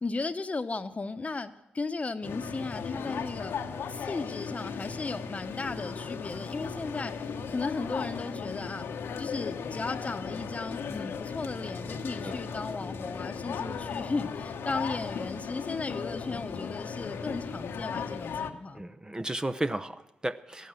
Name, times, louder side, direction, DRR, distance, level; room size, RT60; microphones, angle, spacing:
voice 1, 0.0-3.6 3.9-8.9 9.2-18.8, left 3 dB, 35° left, 10 dB, 1.0 m, -35 dB
sound 1, 2.2-18.5, left 6 dB, 70° left, 1.0 m, -36 dB
voice 2, 18.7-20.7, right 1 dB, 20° right, 11 dB, 0.8 m, -34 dB
14.5 x 11.5 x 7.6 m, 0.90 s
hypercardioid pair, 40°, 4 cm